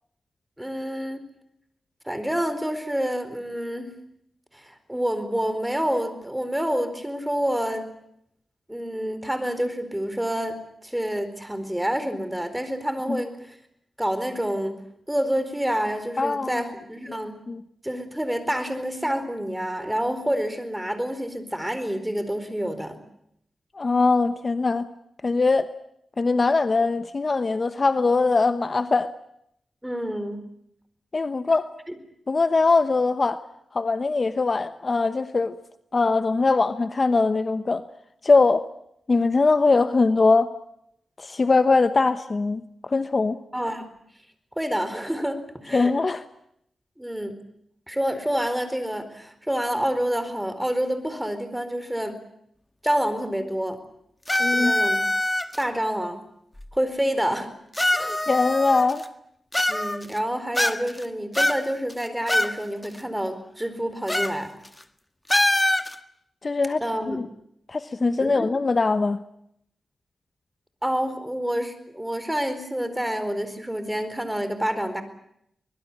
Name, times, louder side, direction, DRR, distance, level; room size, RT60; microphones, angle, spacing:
voice 1, 0.6-1.2 2.0-4.0 4.5-7.9 8.7-13.6 14.0-14.8 15.1-17.4 17.8-23.0 29.8-30.5 31.9-32.0 43.5-43.8 44.6-45.9 47.0-47.3 47.9-52.2 52.8-53.8 54.5-55.0 55.6-56.2 56.7-57.5 57.9-58.2 59.7-64.6 66.8-67.2 68.2-68.5 70.8-75.0, equal, 5° right, 4.4 m, -28 dB
voice 2, 16.2-16.6 17.5-17.6 23.7-24.9 25.2-25.7 26.2-29.1 31.1-31.7 32.3-33.4 33.7-35.6 35.9-37.8 38.2-38.6 39.1-40.5 41.2-43.4 45.7-46.2 54.4-54.7 58.3-59.0 66.4-66.8 67.1-67.3 67.7-69.2, left 3 dB, 40° left, 1.0 m, -21 dB
sound 1, 54.3-55.6 56.6-56.7 57.7-59.0 59.5-60.2 60.6-61.0 61.3-62.5 62.8-62.9 64.1-64.4 64.6-64.8 65.3-65.9, left 1 dB, 15° left, 1.5 m, -23 dB
24.5 x 21.0 x 8.7 m
cardioid pair, 75°, 0 cm